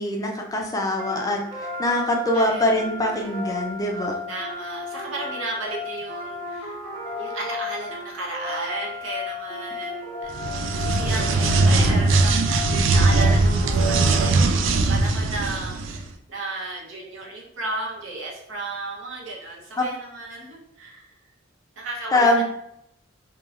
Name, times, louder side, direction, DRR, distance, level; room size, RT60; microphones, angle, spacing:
voice 1, 0.0-4.2 22.1-22.4, left 1 dB, 20° left, 1 dB, 0.3 m, -23 dB
sound 1, 1.0-14.8, left 3 dB, 25° right, 1.0 m, -34 dB
voice 2, 2.0-2.7 4.3-6.8 7.2-21.2 21.8-22.4, right 2 dB, 90° right, -2 dB, 0.8 m, -34 dB
sound 2, 10.3-16.0, right 3 dB, 70° right, 0.3 m, -20 dB
2.9 x 2.3 x 2.4 m, 0.79 s
head